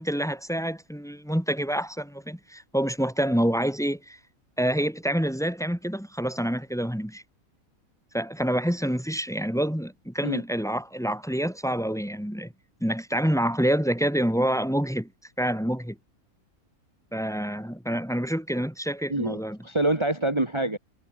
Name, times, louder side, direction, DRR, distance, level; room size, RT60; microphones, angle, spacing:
voice 1, 0.0-4.2 4.6-7.2 8.1-12.5 12.8-15.1 15.4-16.0 17.1-19.6, equal, ahead, 3.6 m, -27 dB
voice 2, 19.1-20.8, right 2 dB, 20° right, 2.7 m, -26 dB
omnidirectional pair, 1.5 m